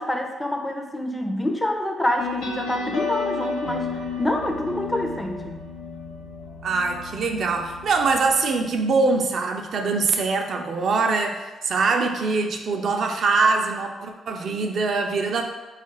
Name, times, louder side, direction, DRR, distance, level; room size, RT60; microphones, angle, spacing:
voice 1, 0.0-5.6, left 1 dB, 15° left, 4 dB, 0.5 m, -27 dB
sound 1, 2.2-9.3, left 5 dB, 85° left, 0.7 m, -33 dB
voice 2, 6.6-15.5, right 4 dB, 60° right, 4 dB, 0.4 m, -23 dB
4.3 x 2.4 x 3.0 m, 1.2 s
supercardioid pair, 50°, 0 cm